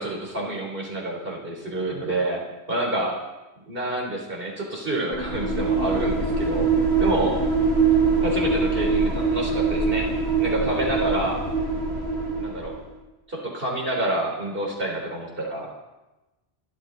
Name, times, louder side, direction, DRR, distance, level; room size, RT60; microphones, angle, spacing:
voice 1, 0.0-2.4 2.7-3.2 3.7-6.7 7.0-7.4 8.2-10.1 10.4-11.4 12.4-12.8 13.3-15.7, right 1 dB, 60° right, -1 dB, 4.0 m, -28 dB
sound 1, 5.1-12.9, right 4 dB, 80° right, 2.6 m, -23 dB
29.5 x 12.5 x 4.0 m, 1.1 s
omnidirectional pair, 1.1 m